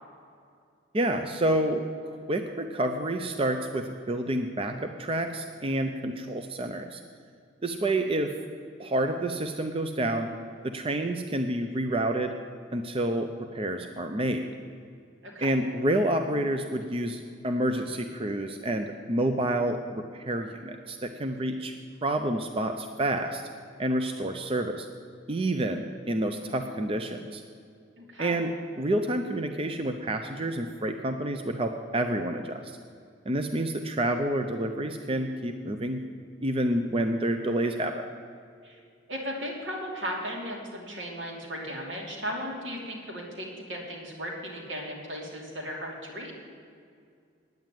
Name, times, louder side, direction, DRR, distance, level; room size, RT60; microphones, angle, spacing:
voice 1, 0.9-7.0 7.6-8.3 8.8-10.3 10.6-12.3 12.7-14.5 15.4-21.7 22.0-23.4 23.8-24.9 25.3-27.4 28.2-28.5 28.8-32.8 33.3-36.0 36.4-38.1, right 1 dB, 30° right, 6 dB, 0.5 m, -29 dB
voice 2, 7.6-8.0 15.2-15.5 28.0-28.4 38.6-38.8 39.1-46.3, equal, 80° right, -1 dB, 2.8 m, -36 dB
9.3 x 9.3 x 8.9 m, 2.3 s
head